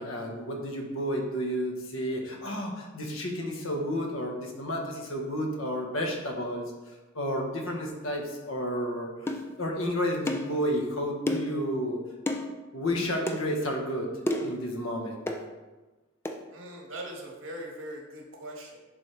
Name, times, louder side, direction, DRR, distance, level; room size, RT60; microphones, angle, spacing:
voice 1, 0.0-6.6 7.1-12.0 12.7-14.1 14.4-15.2, equal, 80° left, 1 dB, 1.3 m, -31 dB
sound 1, 9.3-9.5 10.3-10.5 11.3-11.6 12.3-12.5 13.3-13.4 14.3-14.6 15.3-15.4 16.3-16.4, left 1 dB, 10° left, 0.5 m, -30 dB
voice 2, 16.5-18.8, right 1 dB, 75° right, 0 dB, 1.5 m, -41 dB
10.5 x 4.1 x 3.3 m, 1.2 s
head